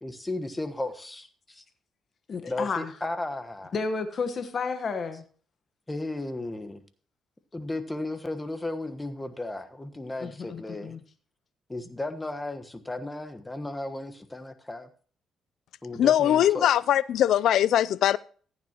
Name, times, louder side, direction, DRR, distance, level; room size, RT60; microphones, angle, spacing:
voice 1, 0.0-1.6 2.5-3.7 5.9-6.8 7.5-11.0 11.7-14.9 15.8-16.7, left 2 dB, 15° left, 1.2 m, -35 dB
voice 2, 2.3-2.9 3.7-5.2 10.2-11.0, left 4 dB, 45° left, 1.2 m, -31 dB
voice 3, 16.0-18.2, left 11 dB, 75° left, 0.4 m, -21 dB
14.5 x 9.4 x 3.0 m
cardioid pair, 90°, 0 cm